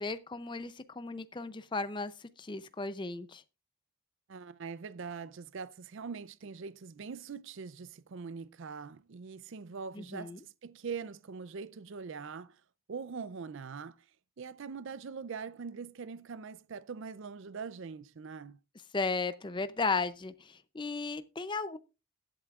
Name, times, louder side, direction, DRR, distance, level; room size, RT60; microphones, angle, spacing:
voice 1, 0.0-3.4 9.9-10.4 18.9-21.8, left 4 dB, 20° left, 0.5 m, -35 dB
voice 2, 4.3-12.6 12.9-14.1 14.4-18.6, right 5 dB, 55° right, 0.4 m, -42 dB
21.0 x 8.0 x 2.4 m
head